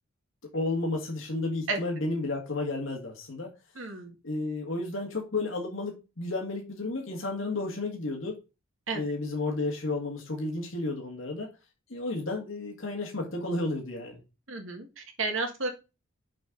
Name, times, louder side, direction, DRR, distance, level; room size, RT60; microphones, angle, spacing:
voice 1, 0.5-3.5 4.2-8.4 8.9-11.5 11.9-14.2, left 2 dB, 75° left, 0 dB, 1.9 m, -32 dB
voice 2, 3.8-4.2 8.9-9.0 14.5-15.7, right 3 dB, 70° right, 4 dB, 2.0 m, -32 dB
6.7 x 5.5 x 3.9 m, 0.28 s
head